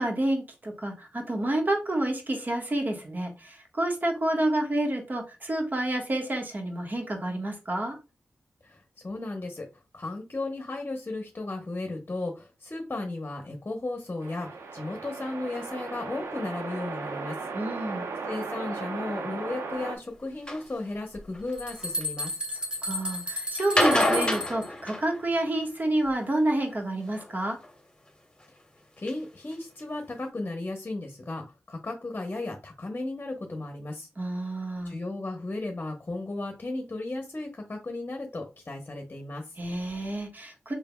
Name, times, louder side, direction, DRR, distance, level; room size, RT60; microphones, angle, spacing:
voice 1, 0.0-7.9 17.5-18.0 22.8-27.6 34.2-34.9 39.6-40.7, right 1 dB, 40° right, 2 dB, 1.4 m, -29 dB
voice 2, 8.6-9.6 9.9-17.4 17.8-17.9 18.3-22.4 29.0-34.1 34.8-39.6, left 2 dB, 35° left, 3 dB, 0.9 m, -35 dB
sound 1, 14.2-20.0, right 4 dB, 75° right, 0.6 m, -36 dB
sound 2, 20.5-20.6 21.3-22.0 23.6-25.6 27.1-27.7 28.4-28.5 29.1-29.2 29.5-29.6 29.8-29.9, left 1 dB, 15° left, 1.3 m, -27 dB
sound 3, 21.1-21.2 21.5-24.7, equal, 20° right, 1.2 m, -33 dB
4.6 x 3.3 x 2.2 m, 0.28 s
cardioid pair, 45°, 5 cm